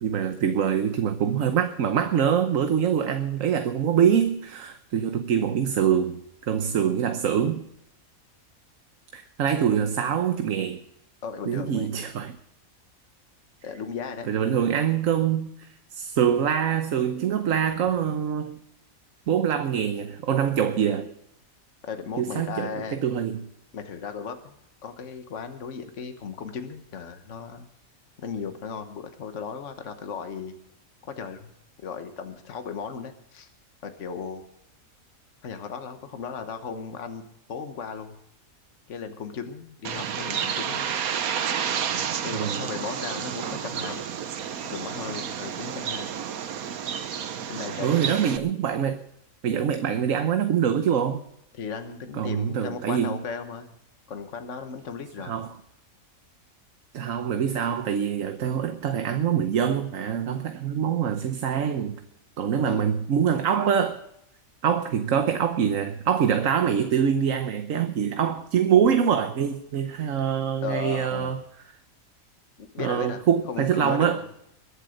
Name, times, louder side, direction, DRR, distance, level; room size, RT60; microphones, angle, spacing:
voice 1, 0.0-7.7 9.1-10.8 11.5-12.4 14.3-18.6 19.3-21.1 22.2-23.5 42.3-42.6 47.8-49.0 49.4-51.2 52.1-53.1 55.3-55.5 56.9-62.0 62.4-64.0 64.6-71.4 72.8-74.2, right 8 dB, 70° right, 8 dB, 1.3 m, -24 dB
voice 2, 11.2-11.9 13.6-14.3 21.8-23.0 23.7-27.7 28.2-30.5 31.0-31.5 31.8-33.5 33.8-34.4 35.4-37.2 37.5-38.1 38.9-40.9 42.2-44.1 44.7-46.1 47.5-48.1 51.5-53.7 54.1-55.4 62.7-62.9 70.6-71.3 72.6-73.2 73.5-74.2, left 6 dB, 60° left, 7 dB, 1.5 m, -36 dB
Bird, 39.8-48.4, right 8 dB, 90° right, 1.4 m, -30 dB
21.5 x 8.2 x 6.5 m, 0.76 s
omnidirectional pair, 1.5 m